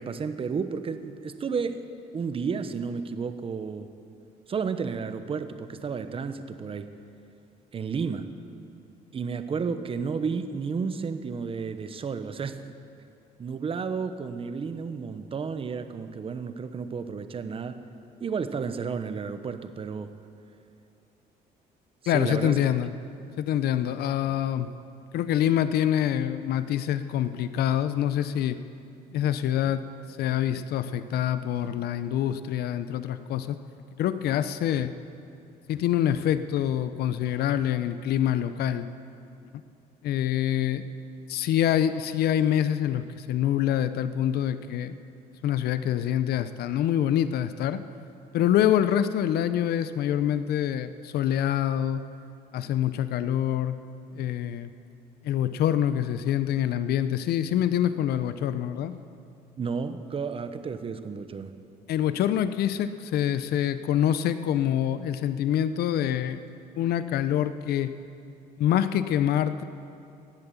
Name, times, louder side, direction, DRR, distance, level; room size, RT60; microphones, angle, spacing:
voice 1, 0.0-1.9 2.1-3.9 4.5-6.9 7.7-8.3 9.1-12.6 13.4-17.8 18.2-20.1 22.0-22.6 59.6-61.5, right 5 dB, 35° right, 10 dB, 0.9 m, -32 dB
voice 2, 22.1-22.9 23.4-24.7 25.1-28.6 29.1-29.8 30.2-33.6 34.0-34.9 35.7-38.9 40.0-40.8 41.3-44.9 45.4-47.8 48.3-52.0 52.5-53.8 54.1-54.7 55.2-58.9 61.9-66.4 66.8-67.9 68.6-69.6, left 10 dB, 70° left, 12 dB, 0.7 m, -25 dB
17.0 x 11.0 x 7.2 m, 2.6 s
cardioid pair, 110°, 17 cm